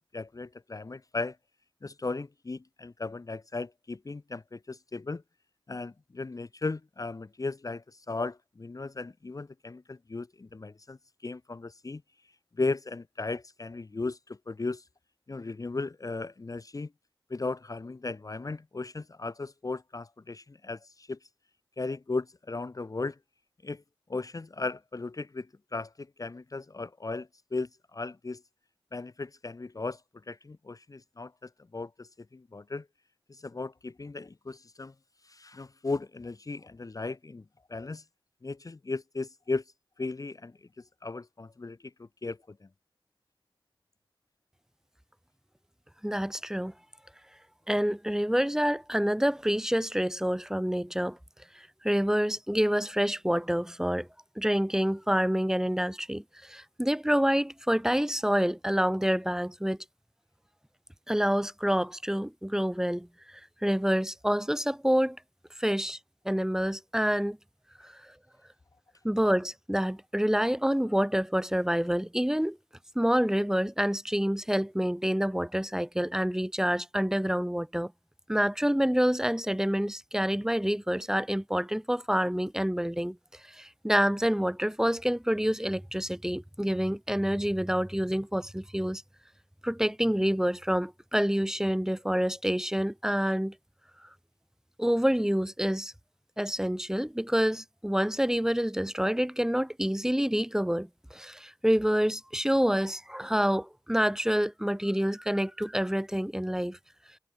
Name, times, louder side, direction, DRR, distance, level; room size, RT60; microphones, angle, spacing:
voice 1, 0.0-1.4 1.8-5.2 5.7-12.0 12.6-14.8 15.3-16.9 17.3-21.2 21.8-23.2 23.6-23.8 24.1-28.4 28.9-30.0 30.3-32.9 33.3-34.9 35.2-37.4 37.7-38.0 38.4-39.6 40.0-42.7, left 3 dB, 40° left, 0.8 m, -36 dB
voice 2, 46.0-46.7 47.7-51.2 51.5-54.1 54.4-59.8 61.1-65.2 65.6-66.0 66.2-67.4 67.8-67.9 69.0-72.6 72.9-77.9 78.3-83.2 83.5-89.0 89.6-93.5 94.8-95.9 96.4-106.8, equal, 5° right, 1.3 m, -27 dB
wide cardioid pair, 65°, 9 cm